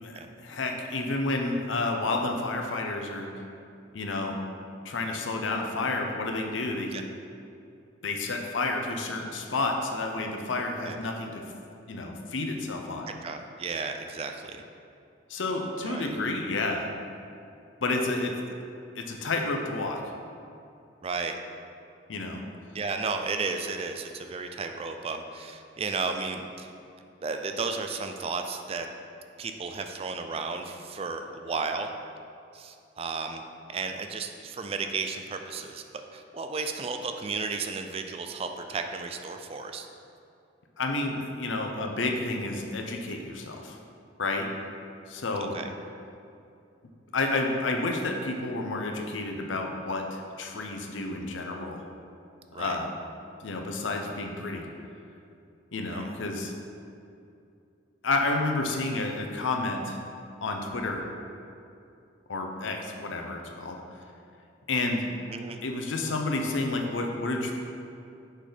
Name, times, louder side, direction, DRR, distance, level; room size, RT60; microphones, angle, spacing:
voice 1, 0.0-3.4 3.9-4.4 4.8-6.9 8.0-11.4 11.9-13.1 15.3-16.9 17.8-18.3 19.0-20.0 22.1-22.4 40.8-43.8 44.2-44.5 45.1-45.6 47.1-51.8 52.6-52.9 53.4-54.7 55.7-56.5 58.0-60.0 60.4-61.1 62.3-63.8 64.7-65.0 65.6-67.5, left 2 dB, 85° left, 3 dB, 0.7 m, -30 dB
voice 2, 13.2-14.6 15.8-16.2 21.0-21.3 22.7-26.7 27.2-28.9 29.4-31.9 32.5-33.4 33.7-35.8 36.1-39.9 45.5-45.7 52.5-52.8 55.9-56.0 65.3-65.6, right 4 dB, 30° right, 6 dB, 0.3 m, -33 dB
6.4 x 4.0 x 5.0 m, 2.6 s
head